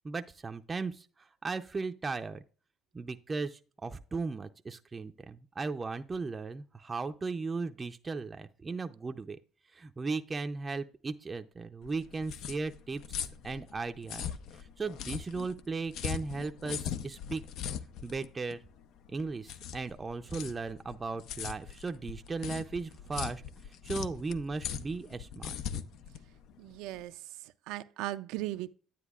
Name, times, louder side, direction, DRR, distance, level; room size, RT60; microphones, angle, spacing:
voice 1, 0.0-1.0 1.4-2.4 2.9-9.4 9.8-14.2 14.8-17.4 18.0-18.6 19.1-23.4 23.8-25.4, right 4 dB, 25° right, 0.5 m, -36 dB
sound 1, 11.8-27.0, left 9 dB, 70° left, 0.5 m, -40 dB
voice 2, 26.6-28.7, right 16 dB, 85° right, 0.4 m, -38 dB
9.9 x 9.1 x 2.4 m
cardioid pair, 95°, 0 cm